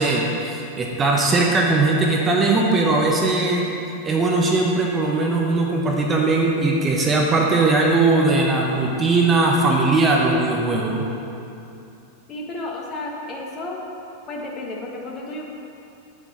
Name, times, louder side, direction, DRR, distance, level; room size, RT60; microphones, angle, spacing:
voice 1, 0.0-3.7 4.0-11.0, right 3 dB, 20° right, -1 dB, 1.1 m, -19 dB
voice 2, 12.3-13.8 14.3-15.5, left 2 dB, 30° left, -1 dB, 1.6 m, -32 dB
9.8 x 8.6 x 4.3 m, 2.7 s
figure-of-eight pair, 90°, 0 cm